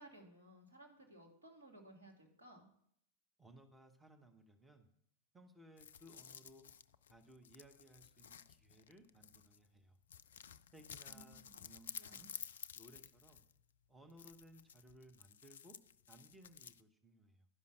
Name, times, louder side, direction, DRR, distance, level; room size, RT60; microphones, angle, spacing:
voice 1, 0.0-2.7 11.1-11.6 11.9-12.2, right 1 dB, 75° right, 1 dB, 2.0 m, -59 dB
voice 2, 3.4-4.9 5.3-6.6 7.1-10.0 10.7-12.3 12.7-13.4 13.9-15.8 16.1-17.5, right 1 dB, 10° right, 5 dB, 1.0 m, -62 dB
sound 1, 5.8-9.7 10.1-13.6 14.1-16.8, left 8 dB, 65° left, 0.3 m, -53 dB
11.0 x 5.6 x 6.4 m, 0.69 s
figure-of-eight pair, 90°, 0 cm